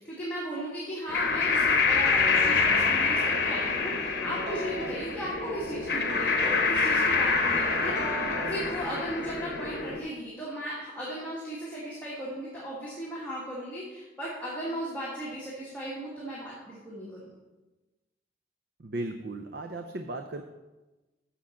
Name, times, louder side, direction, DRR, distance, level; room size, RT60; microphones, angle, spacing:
voice 1, 0.0-17.3, equal, 10° left, -8 dB, 1.9 m, -36 dB
sound 1, 1.1-10.0, left 4 dB, 55° left, 0.9 m, -26 dB
sound 2, 2.2-9.3, right 1 dB, 75° right, 1.5 m, -40 dB
voice 2, 18.8-20.5, right 2 dB, 60° right, 6 dB, 0.5 m, -36 dB
7.4 x 7.0 x 5.7 m, 1.1 s
head